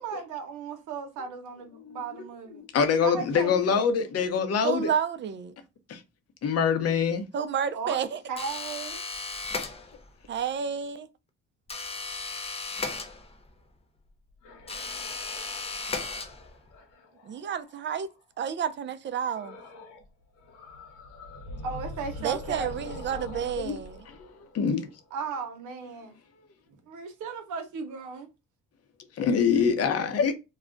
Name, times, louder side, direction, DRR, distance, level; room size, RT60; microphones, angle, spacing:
voice 1, 0.0-2.6 3.0-3.9 7.7-8.0 8.3-9.0 21.6-23.5 25.1-26.1 26.9-28.3, right 5 dB, 85° right, 0.7 m, -36 dB
voice 2, 2.5-4.9 5.9-6.0 6.4-7.2 23.6-23.8 24.2-24.3 24.5-24.9 29.2-30.3, left 6 dB, 55° left, 0.7 m, -25 dB
voice 3, 4.6-5.5 7.3-8.2 10.3-11.1 17.3-18.1 18.4-19.6 22.2-24.0, right 8 dB, 40° right, 0.4 m, -30 dB
sound 1, 8.4-10.2 11.7-13.6 14.7-16.7, left 3 dB, 20° left, 0.5 m, -35 dB
sound 2, 14.1-18.2 19.3-20.1 20.4-25.2, left 2 dB, 80° left, 0.9 m, -44 dB
2.3 x 2.1 x 3.6 m
cardioid pair, 90°, 30 cm